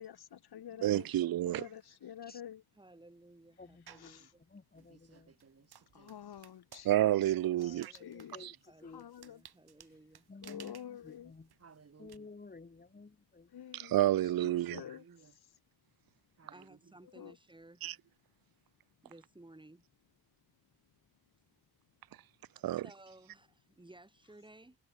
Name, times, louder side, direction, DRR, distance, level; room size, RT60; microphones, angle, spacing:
voice 1, 0.0-1.1 1.5-2.6 4.0-4.3 5.9-7.2 7.6-8.3 8.9-9.4 10.4-11.3 13.5-13.9 14.4-15.0 17.1-17.3, left 10 dB, 85° left, 1.3 m, -48 dB
voice 2, 0.8-1.7 6.8-7.9 8.4-8.5 13.7-14.8 17.8-17.9 22.6-22.8, right 13 dB, 70° right, 0.5 m, -29 dB
voice 3, 2.7-4.4 7.6-10.3 16.5-17.8 19.0-19.8 22.6-24.8, right 2 dB, 15° right, 5.1 m, -58 dB
voice 4, 3.6-4.2 4.5-5.3 8.3-8.5 8.8-9.0 10.3-11.5 12.0-13.5, left 3 dB, 25° left, 2.5 m, -52 dB
sound 1, 3.9-4.2 4.7-12.2, right 9 dB, 85° right, 2.3 m, -58 dB
voice 5, 4.8-6.5 11.6-12.3 14.6-15.4 16.4-17.0, right 5 dB, 40° right, 2.8 m, -61 dB
wide cardioid pair, 180°, 37 cm